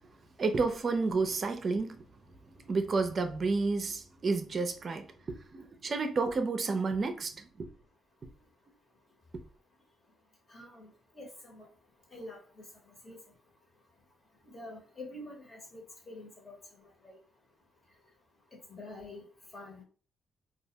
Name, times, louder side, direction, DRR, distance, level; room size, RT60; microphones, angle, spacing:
voice 1, 0.4-2.0 2.7-7.7, right 4 dB, 40° right, 0.4 m, -31 dB
voice 2, 10.5-10.9 11.1-11.7 12.1-12.4 13.0-13.2 14.5-17.2 18.7-19.2 19.5-19.8, left 2 dB, 40° left, 0.9 m, -46 dB
2.2 x 2.1 x 2.7 m
cardioid pair, 90°, 0 cm